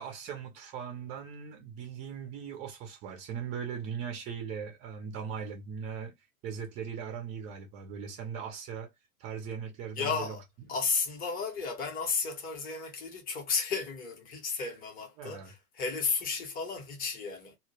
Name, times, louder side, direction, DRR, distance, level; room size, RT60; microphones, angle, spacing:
voice 1, 0.0-6.2 6.4-8.9 9.2-10.4 15.2-15.5, right 7 dB, 15° right, 0.4 m, -39 dB
voice 2, 10.0-10.4 10.7-17.6, left 4 dB, 20° left, 0.8 m, -33 dB
2.2 x 2.1 x 3.0 m
hypercardioid pair, 110°, 47 cm